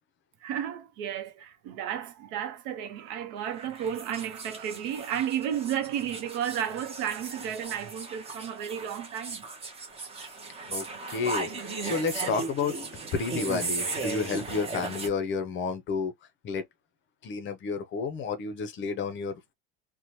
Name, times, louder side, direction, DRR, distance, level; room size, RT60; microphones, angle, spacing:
voice 1, 0.4-9.5, right 9 dB, 80° right, 0.7 m, -33 dB
sound 1, 3.4-15.1, right 3 dB, 15° right, 0.6 m, -37 dB
voice 2, 10.7-12.7 13.1-16.1 16.4-16.6 17.2-19.4, left 5 dB, 35° left, 0.6 m, -31 dB
2.7 x 2.2 x 3.0 m
cardioid pair, 145°, 35 cm